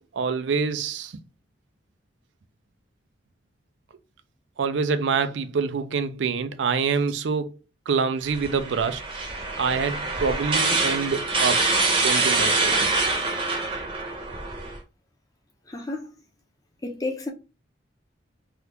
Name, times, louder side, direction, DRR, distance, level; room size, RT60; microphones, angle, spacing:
voice 1, 0.1-1.2 4.6-7.6 7.9-9.0 9.6-11.7 12.0-12.9, right 5 dB, 80° right, 0.4 m, -26 dB
sound 1, 8.3-14.8, right 3 dB, 30° right, 0.8 m, -25 dB
voice 2, 15.7-16.1 16.8-17.3, left 2 dB, 20° left, 0.7 m, -31 dB
3.4 x 2.4 x 2.9 m
head